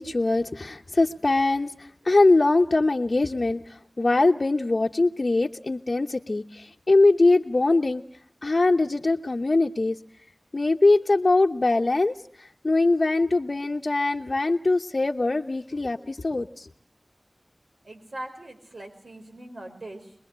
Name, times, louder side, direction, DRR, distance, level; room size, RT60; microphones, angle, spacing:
voice 1, 0.0-8.0 8.4-10.0 10.5-16.7, left 2 dB, 55° left, 2 dB, 1.0 m, -22 dB
voice 2, 17.8-20.1, right 1 dB, 80° right, 4 dB, 4.6 m, -41 dB
25.0 x 21.5 x 8.0 m, 0.62 s
wide cardioid pair, 70°, 0 cm